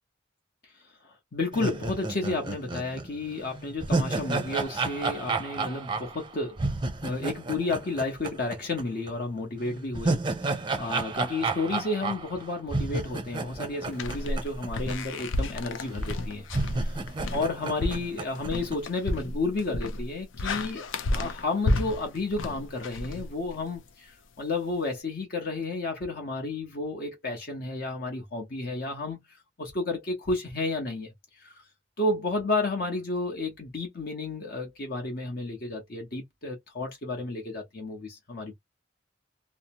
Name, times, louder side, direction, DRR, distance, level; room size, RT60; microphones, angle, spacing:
voice 1, 1.0-6.6 7.0-10.2 10.8-16.5 17.3-29.2 29.6-31.1 31.4-31.6 32.0-38.5, left 2 dB, 55° left, 0.8 m, -31 dB
sound 1, 1.5-8.8 9.1-9.2 9.7-14.9 15.2-15.3 16.0-16.1 16.5-18.8, right 3 dB, 25° right, 0.5 m, -31 dB
sound 2, 13.9-23.8, left 1 dB, 80° left, 0.5 m, -32 dB
2.7 x 2.0 x 2.8 m
head